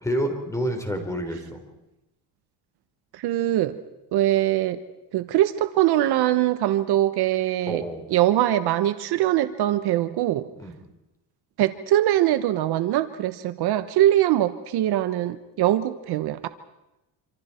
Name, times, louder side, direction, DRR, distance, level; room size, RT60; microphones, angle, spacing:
voice 1, 0.0-1.6 7.7-8.1 10.6-10.8, equal, 5° left, 4 dB, 4.1 m, -28 dB
voice 2, 3.1-3.8 4.1-4.8 5.1-7.8 8.1-10.5 11.6-16.5, right 13 dB, 60° right, 11 dB, 1.2 m, -22 dB
26.5 x 26.5 x 4.5 m, 0.95 s
cardioid pair, 120°, 43 cm